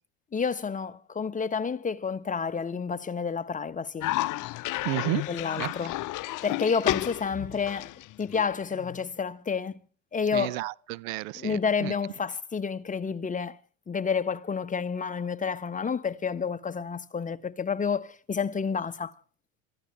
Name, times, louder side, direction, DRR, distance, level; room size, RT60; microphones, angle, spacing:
voice 1, 0.3-4.1 5.3-5.9 6.4-7.9 8.2-9.8 10.1-10.7 11.3-13.6 13.9-19.1, left 6 dB, 20° left, 1.2 m, -30 dB
Cough, 4.0-9.1, left 17 dB, 50° left, 0.8 m, -32 dB
voice 2, 4.8-5.2 5.6-5.7 10.3-11.9, right 19 dB, 80° right, 0.7 m, -32 dB
27.5 x 15.0 x 3.3 m
supercardioid pair, 105°, 40 cm